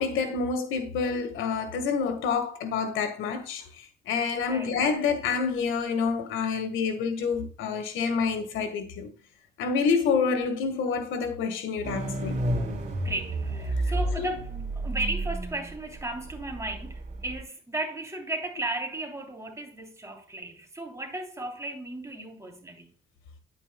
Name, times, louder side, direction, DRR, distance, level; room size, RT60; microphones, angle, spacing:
voice 1, 0.0-3.6 4.1-9.1 9.6-12.4 14.2-14.3, left 5 dB, 90° left, 1.6 m, -28 dB
voice 2, 4.4-4.8 13.0-22.9, right 2 dB, 15° right, 3.2 m, -35 dB
sound 1, 11.8-17.4, right 1 dB, 35° right, 3.0 m, -31 dB
9.9 x 9.0 x 2.3 m
cardioid pair, 90°, 20 cm